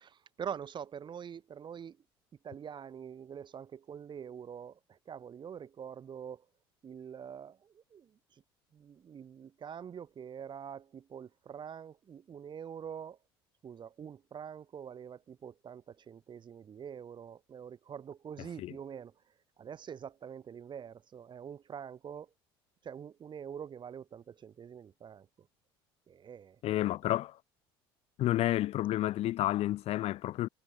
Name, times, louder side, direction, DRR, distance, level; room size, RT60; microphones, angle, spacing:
voice 1, 0.0-2.0 2.4-6.4 6.8-8.1 8.7-13.2 13.6-19.1 19.6-22.3 22.8-25.3 26.1-26.6, right 8 dB, 35° right, 1.7 m, -45 dB
voice 2, 26.6-27.4 28.2-30.5, left 15 dB, 50° left, 1.0 m, -30 dB
hypercardioid pair, 65°, 13 cm